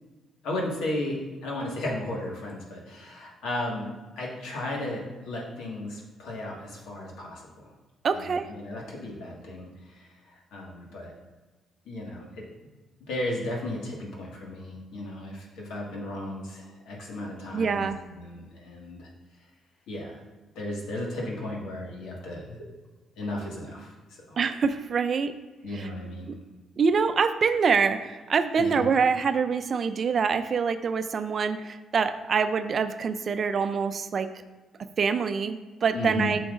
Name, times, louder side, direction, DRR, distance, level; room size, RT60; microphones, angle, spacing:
voice 1, 0.4-3.9 4.2-7.7 8.1-11.1 11.9-12.3 13.1-19.1 19.9-20.2 20.6-22.6 23.2-23.9 24.3-24.4 25.6-26.3 28.6-28.8 35.9-36.3, left 1 dB, 85° left, -2 dB, 1.7 m, -35 dB
voice 2, 8.0-8.5 17.5-18.0 24.4-25.3 25.7-25.9 26.8-34.3 35.0-36.4, right 5 dB, 50° right, 10 dB, 0.5 m, -25 dB
9.2 x 5.9 x 2.5 m, 1.2 s
cardioid pair, 90°, 0 cm